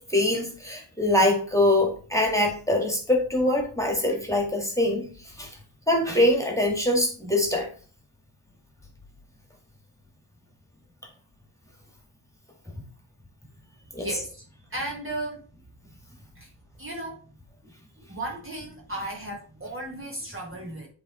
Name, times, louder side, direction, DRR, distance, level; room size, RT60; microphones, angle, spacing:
voice 1, 0.0-5.1 5.4-5.5 5.9-7.7 13.9-14.1, left 1 dB, 5° left, 1 dB, 2.0 m, -23 dB
voice 2, 14.0-14.4 14.7-15.4 16.4-16.5 16.8-17.2 18.1-20.9, right 1 dB, 25° right, -1 dB, 1.5 m, -35 dB
7.9 x 3.4 x 4.3 m, 0.40 s
cardioid pair, 95°, 48 cm